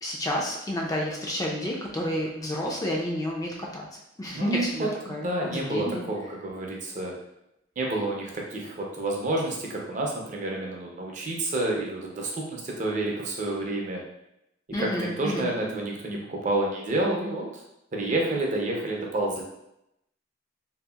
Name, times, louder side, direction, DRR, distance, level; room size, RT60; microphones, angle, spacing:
voice 1, 0.0-3.8 4.2-6.0 14.7-15.5, left 1 dB, 20° left, -2 dB, 0.3 m, -30 dB
voice 2, 4.3-4.9 5.2-7.1 7.8-14.0 14.8-17.6 17.9-19.4, right 2 dB, 40° right, -1 dB, 0.5 m, -29 dB
2.8 x 2.4 x 2.3 m, 0.84 s
head